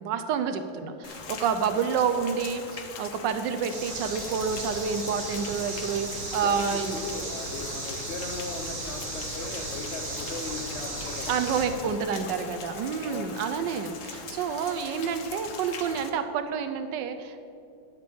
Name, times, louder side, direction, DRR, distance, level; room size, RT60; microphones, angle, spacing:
voice 1, 0.0-7.0 11.3-17.4, right 6 dB, 70° right, 9 dB, 1.2 m, -29 dB
Rain, 1.0-16.1, left 5 dB, 55° left, 0.9 m, -42 dB
voice 2, 1.7-2.0 6.3-11.4 11.7-12.4 13.0-13.4, left 3 dB, 80° left, 2 dB, 0.6 m, -39 dB
sound 1, 3.7-11.6, right 2 dB, 45° right, 2.3 m, -36 dB
11.5 x 5.2 x 6.9 m, 2.4 s
omnidirectional pair, 2.2 m